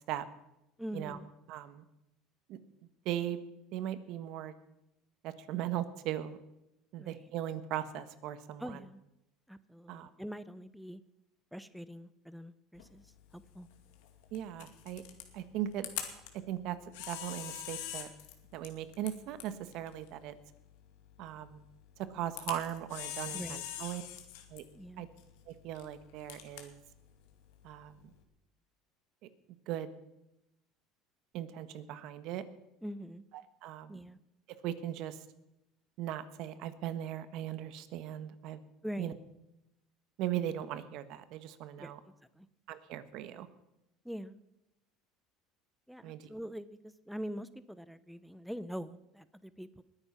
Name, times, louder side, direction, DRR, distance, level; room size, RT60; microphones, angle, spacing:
voice 1, 0.8-1.3 7.0-7.2 8.6-9.0 9.5-11.0 11.5-13.7 23.3-23.6 24.7-25.1 32.8-33.2 33.9-34.2 38.8-39.1 41.8-41.9 42.4-42.5 44.0-44.4 45.9-49.8, equal, ahead, 15 dB, 0.6 m, -43 dB
voice 2, 1.5-1.8 2.5-2.6 3.0-3.4 3.7-4.5 5.2-6.4 6.9-8.8 9.9-10.1 14.3-15.0 15.3-15.9 16.5-16.8 17.1-18.1 18.5-20.4 21.2-21.6 22.1-24.0 24.5-24.6 25.0-25.1 25.5-26.8 27.6-28.1 29.7-29.9 31.3-32.4 33.3-34.0 34.6-35.2 36.0-38.6 39.0-39.1 40.2-42.0 42.7-43.5 46.0-46.3, right 12 dB, 60° right, 12 dB, 1.2 m, -38 dB
Camera, 12.8-28.2, left 11 dB, 80° left, 2.3 m, -46 dB
20.5 x 9.3 x 5.7 m, 0.90 s
supercardioid pair, 120°, 0 cm